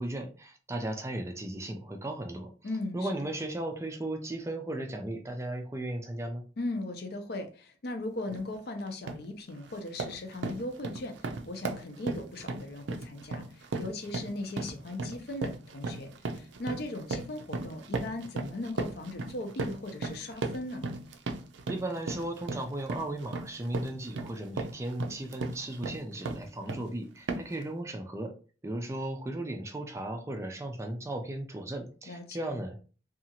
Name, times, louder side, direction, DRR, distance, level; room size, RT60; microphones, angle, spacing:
voice 1, 0.0-2.5 2.9-6.4 21.7-28.4 28.6-32.8, right 1 dB, 15° right, 5 dB, 0.4 m, -36 dB
voice 2, 2.6-3.3 6.6-20.9 32.1-32.5, left 2 dB, 55° left, 5 dB, 0.5 m, -38 dB
sound 1, 8.3-8.5 8.9-9.3 9.6-26.9 27.3-27.6, right 3 dB, 80° right, 0.4 m, -37 dB
2.8 x 2.4 x 2.8 m, 0.38 s
head